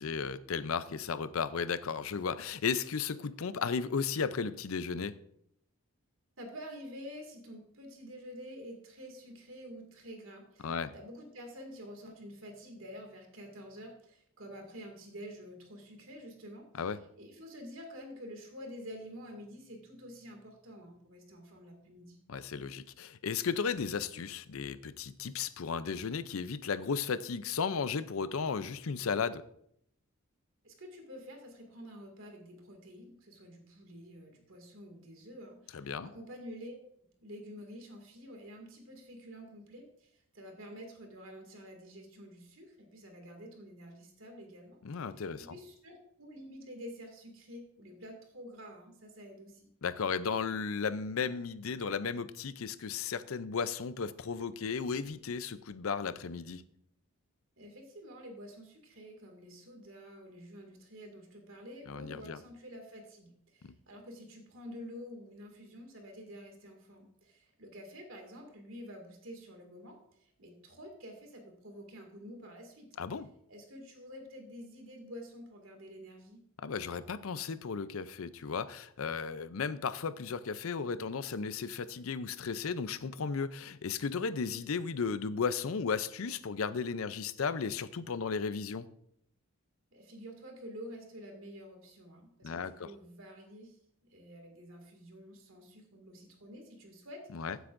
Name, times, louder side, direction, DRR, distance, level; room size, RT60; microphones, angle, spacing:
voice 1, 0.0-5.1 10.6-10.9 16.8-17.0 22.3-29.4 35.7-36.1 44.8-45.5 49.8-56.6 61.9-62.4 63.6-63.7 73.0-73.3 76.6-88.9 92.4-92.9 97.3-97.6, left 5 dB, 75° left, 0.5 m, -35 dB
voice 2, 6.4-16.9 17.2-22.2 30.6-36.8 37.2-44.8 45.4-49.7 57.6-72.9 73.5-76.4 89.9-93.8 94.0-97.5, equal, 70° right, 2.2 m, -49 dB
14.5 x 8.0 x 2.6 m
head